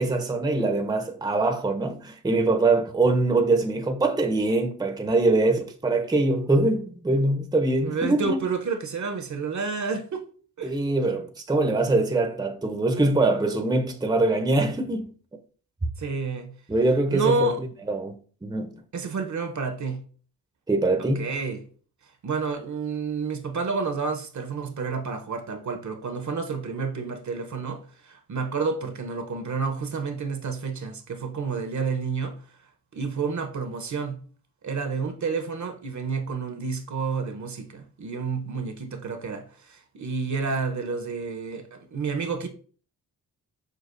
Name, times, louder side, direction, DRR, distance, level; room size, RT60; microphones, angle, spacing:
voice 1, 0.0-8.4 10.6-15.1 16.7-17.5 17.9-18.1 18.4-18.7 20.7-21.3, right 2 dB, 10° right, 0.7 m, -23 dB
voice 2, 7.8-10.2 10.6-10.7 16.0-16.5 17.1-17.6 18.9-20.0 21.2-21.7 22.2-32.4 32.9-34.2 34.6-42.5, right 4 dB, 45° right, 0.8 m, -30 dB
6.4 x 2.3 x 2.5 m
supercardioid pair, 50°, 41 cm